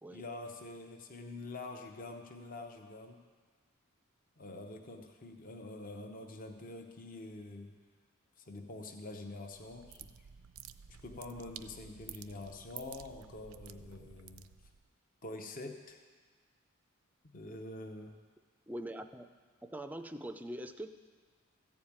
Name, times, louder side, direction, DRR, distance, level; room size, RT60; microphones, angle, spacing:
voice 1, 0.1-3.2 4.4-7.8 8.4-10.1 11.0-14.5 15.2-16.0 17.3-18.2, left 2 dB, 40° left, 4 dB, 0.8 m, -46 dB
sound 1, 9.5-14.9, right 9 dB, 85° right, 0.4 m, -52 dB
voice 2, 18.7-19.3 19.6-21.0, right 1 dB, 10° right, 9 dB, 0.4 m, -43 dB
14.0 x 4.9 x 8.7 m, 1.5 s
head